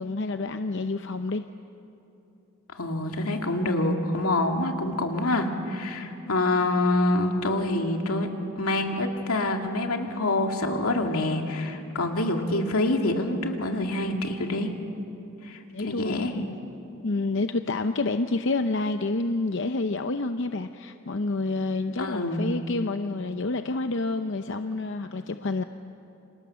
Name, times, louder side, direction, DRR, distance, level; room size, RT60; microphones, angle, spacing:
voice 1, 0.0-1.4 15.7-16.6 17.0-25.6, left 3 dB, 55° left, 8 dB, 0.7 m, -28 dB
voice 2, 2.7-8.3 8.6-14.7 15.4-15.6 15.8-16.3 22.0-22.4, left 2 dB, 85° left, 3 dB, 2.5 m, -26 dB
29.5 x 26.5 x 7.0 m, 2.7 s
head